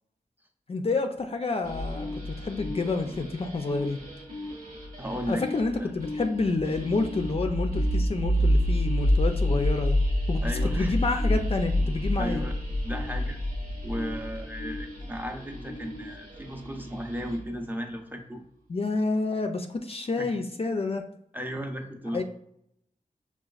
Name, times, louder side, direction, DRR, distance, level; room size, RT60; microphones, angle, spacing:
voice 1, 0.7-4.0 5.3-10.0 10.3-12.4 18.7-21.1 22.1-22.2, left 3 dB, 40° left, 4 dB, 0.4 m, -29 dB
sound 1, 1.6-17.6, equal, 85° right, 1.2 m, -29 dB
voice 2, 5.0-5.4 5.8-5.9 10.4-10.9 12.2-12.5 12.8-13.4 13.8-18.4 20.2-20.3 21.3-22.2, equal, 15° right, 3 dB, 0.6 m, -35 dB
5.7 x 2.3 x 2.4 m, 0.74 s
wide cardioid pair, 70°, 15 cm